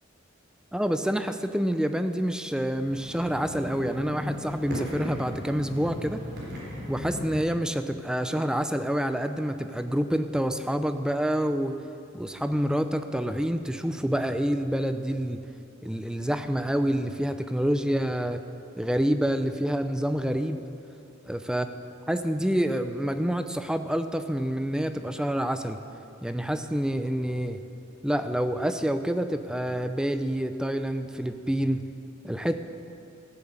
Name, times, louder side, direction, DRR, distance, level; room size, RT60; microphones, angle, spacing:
voice 1, 0.7-6.2 6.9-11.8 12.1-15.4 15.8-18.4 18.8-20.6 21.3-21.7 22.1-25.8 26.2-27.6 28.0-31.8 32.2-32.6, equal, 5° right, 9 dB, 0.5 m, -27 dB
sound 1, 2.7-7.4, equal, 55° right, 3.9 m, -37 dB
15.0 x 7.4 x 8.1 m, 2.8 s
head